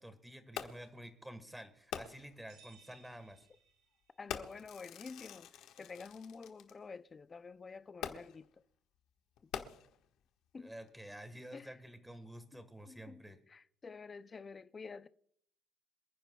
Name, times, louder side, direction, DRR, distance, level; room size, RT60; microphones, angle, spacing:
voice 1, 0.0-3.5 10.6-13.4, equal, 5° right, 1.4 m, -50 dB
Fireworks, 0.6-1.0 1.9-2.4 3.3-3.4 4.3-6.7 8.0-8.5 9.4-10.2 10.9-11.0, left 9 dB, 70° left, 1.4 m, -45 dB
sound 1, 2.5-4.3, right 5 dB, 75° right, 5.6 m, -64 dB
voice 2, 4.2-5.5 5.8-8.6 10.5-10.7 11.5-11.7 12.9-13.2 13.5-15.1, left 4 dB, 20° left, 0.5 m, -49 dB
27.5 x 10.0 x 2.3 m
cardioid pair, 155°, 0 cm